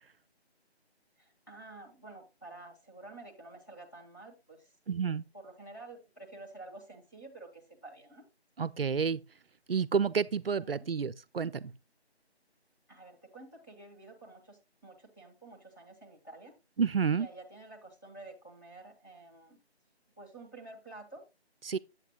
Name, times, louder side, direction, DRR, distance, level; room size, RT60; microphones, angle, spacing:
voice 1, 1.2-4.7 5.3-8.2 10.6-10.9 12.9-16.5 17.1-19.6 20.2-21.2, right 2 dB, 15° left, 1.1 m, -50 dB
voice 2, 4.9-5.2 8.6-9.2 9.7-11.7 16.8-17.3 21.7-21.8, right 6 dB, 60° right, 0.5 m, -30 dB
9.0 x 8.0 x 2.2 m
figure-of-eight pair, 170°, 33 cm